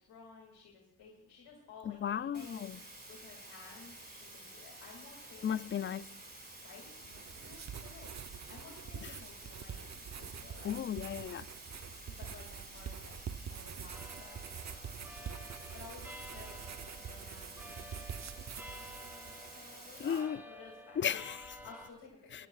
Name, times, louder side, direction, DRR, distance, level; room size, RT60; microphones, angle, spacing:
voice 1, 0.1-5.9 6.6-10.9 12.1-13.2 13.5-21.1 21.6-22.5, left 4 dB, 70° left, 2.5 m, -55 dB
voice 2, 1.9-2.8 5.4-6.1 9.0-9.1 10.6-11.5 20.0-20.4 21.0-21.6 22.3-22.4, left 8 dB, 30° left, 0.4 m, -35 dB
sound 1, 2.3-20.2, right 2 dB, 25° right, 5.7 m, -51 dB
sound 2, 6.9-19.6, right 7 dB, 45° right, 0.7 m, -46 dB
sound 3, 13.9-21.9, equal, 5° right, 2.4 m, -52 dB
21.5 x 11.0 x 2.4 m
cardioid pair, 55°, 39 cm